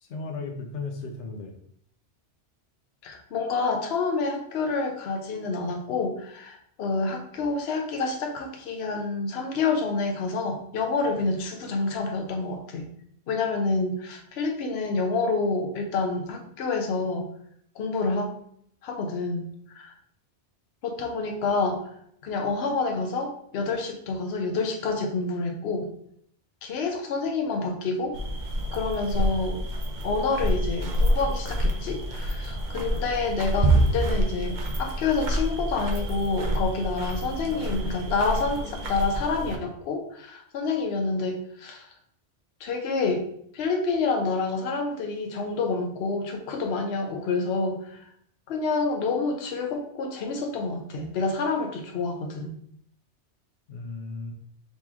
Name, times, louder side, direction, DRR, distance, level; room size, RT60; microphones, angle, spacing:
voice 1, 0.0-1.5 53.7-54.3, left 3 dB, 90° left, 4 dB, 1.1 m, -35 dB
voice 2, 3.0-12.9 13.3-17.3 17.8-18.3 18.8-19.4 19.8-19.9 20.8-21.8 22.2-25.9 26.6-28.2 28.7-29.6 30.0-41.9 42.6-43.2 43.5-48.1 48.5-52.5, left 3 dB, 65° left, 3 dB, 0.9 m, -28 dB
sound 1, 28.1-39.6, right 1 dB, 50° right, 0.8 m, -27 dB
4.1 x 3.1 x 3.5 m, 0.67 s
omnidirectional pair, 1.2 m